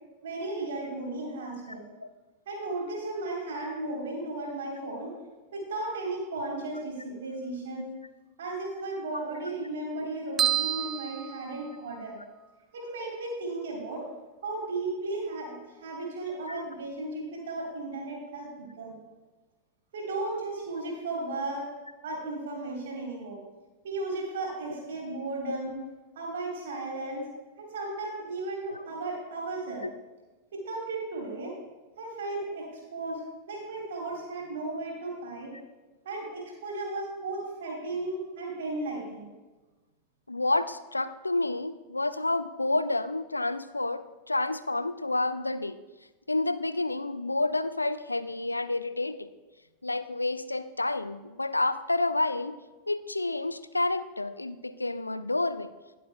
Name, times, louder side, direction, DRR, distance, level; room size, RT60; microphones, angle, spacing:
voice 1, 0.2-1.8 2.4-5.1 5.5-7.9 8.4-12.2 12.7-14.1 14.4-19.0 19.9-21.7 22.0-23.4 23.8-25.8 26.1-27.2 27.6-29.9 30.5-31.6 32.0-35.5 36.0-39.3, right 2 dB, 60° right, -1 dB, 3.4 m, -35 dB
sound 1, 10.4-12.2, right 11 dB, 25° right, 0.5 m, -30 dB
voice 2, 40.3-45.8 46.3-49.3 49.8-52.5 52.9-55.7, left 2 dB, 85° left, 14 dB, 0.4 m, -29 dB
20.0 x 7.7 x 2.2 m, 1.2 s
figure-of-eight pair, 90°, 0 cm